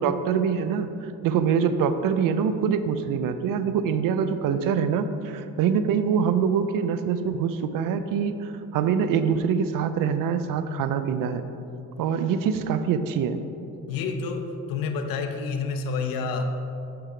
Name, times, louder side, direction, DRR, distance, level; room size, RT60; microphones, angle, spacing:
voice 1, 0.0-11.5 12.0-13.4, right 7 dB, 70° right, 11 dB, 0.5 m, -24 dB
voice 2, 13.9-16.4, left 4 dB, 70° left, 5 dB, 0.7 m, -29 dB
6.5 x 4.8 x 4.9 m, 2.8 s
cardioid pair, 80°, 35 cm